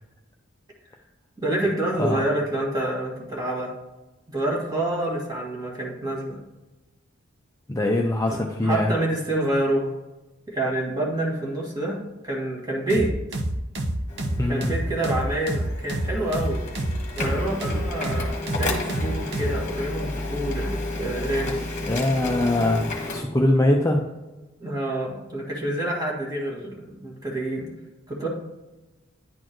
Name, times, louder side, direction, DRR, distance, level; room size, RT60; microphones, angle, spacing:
voice 1, 1.4-3.7 4.3-6.4 8.3-8.4 8.6-10.0 10.5-12.0 12.2-13.1 14.5-16.6 17.1-21.6 24.6-27.7 28.1-28.3, right 1 dB, 20° right, -3 dB, 1.8 m, -27 dB
voice 2, 7.7-8.9 14.4-14.7 21.8-22.9 23.1-24.0, left 1 dB, 15° left, 1 dB, 0.5 m, -22 dB
sound 1, 12.9-19.6, right 1 dB, 55° right, 0.8 m, -27 dB
Printer, 14.1-23.2, left 2 dB, 35° left, 1.3 m, -32 dB
9.9 x 4.3 x 3.0 m, 1.1 s
head